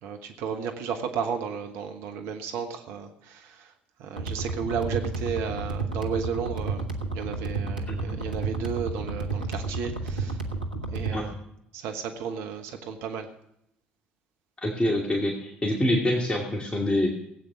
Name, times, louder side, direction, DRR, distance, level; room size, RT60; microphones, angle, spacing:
voice 1, 0.0-3.7 4.0-6.8 7.1-10.4 10.9-11.3 11.7-13.3, right 6 dB, 60° right, 5 dB, 1.2 m, -33 dB
sound 1, 4.2-11.2, right 3 dB, 85° right, 1.2 m, -31 dB
voice 2, 14.6-17.1, left 1 dB, 20° left, 0 dB, 2.3 m, -26 dB
17.0 x 8.6 x 6.1 m, 0.76 s
figure-of-eight pair, 55°, 5 cm